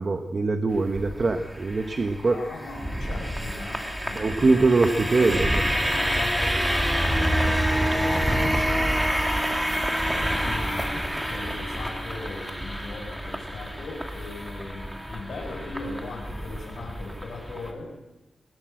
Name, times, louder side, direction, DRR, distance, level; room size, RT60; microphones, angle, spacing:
voice 1, 0.0-2.4 4.1-5.6, right 3 dB, 40° right, 6 dB, 1.2 m, -23 dB
sound 1, 0.7-17.7, equal, 5° right, 2.5 m, -27 dB
voice 2, 2.3-4.7 5.2-8.9 10.0-17.9, left 3 dB, 85° left, -3 dB, 5.7 m, -38 dB
20.0 x 20.0 x 7.8 m, 1.0 s
wide cardioid pair, 110°, 0 cm